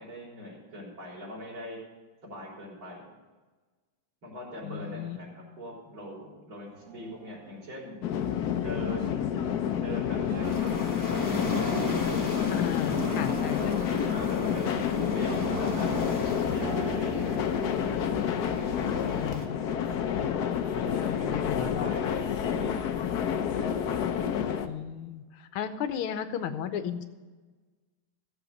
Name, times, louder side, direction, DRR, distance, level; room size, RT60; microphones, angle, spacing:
voice 1, 0.0-1.8 2.2-3.1 4.2-8.0 8.5-9.2 9.8-13.0 13.3-14.8 15.1-15.9 16.3-17.4 18.4-19.3 20.5-23.5, equal, 70° right, -3 dB, 4.6 m, -41 dB
voice 2, 4.6-5.2 12.5-13.6 19.1-20.0 20.9-22.1 24.7-27.1, left 9 dB, 85° left, 10 dB, 1.7 m, -35 dB
sound 1, 6.7-21.4, right 5 dB, 55° right, 1.3 m, -43 dB
sound 2, 8.0-24.7, left 8 dB, 60° left, 1.1 m, -29 dB
sound 3, 10.4-19.5, left 2 dB, 10° left, 1.0 m, -37 dB
15.0 x 7.2 x 6.4 m, 1.3 s
omnidirectional pair, 2.3 m